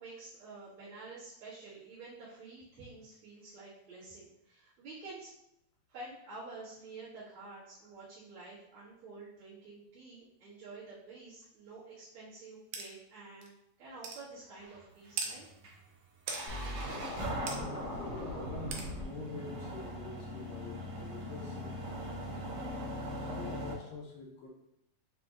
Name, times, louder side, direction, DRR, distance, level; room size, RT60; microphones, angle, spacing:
voice 1, 0.0-5.3 5.9-15.5, right 3 dB, 50° right, -13 dB, 1.9 m, -49 dB
sound 1, 12.7-12.9 13.4-13.5 14.0-14.2 15.2-15.3 16.3-16.4 17.5-17.6 18.7-18.9, right 5 dB, 90° right, 2.1 m, -37 dB
sound 2, 14.6-23.7, equal, 70° right, 2.1 m, -41 dB
Scratching (performance technique), 16.5-19.0, left 1 dB, 55° left, 1.1 m, -40 dB
voice 2, 18.0-22.0 23.1-24.5, left 3 dB, 80° left, -1 dB, 1.9 m, -46 dB
7.0 x 2.5 x 2.5 m, 0.79 s
omnidirectional pair, 3.4 m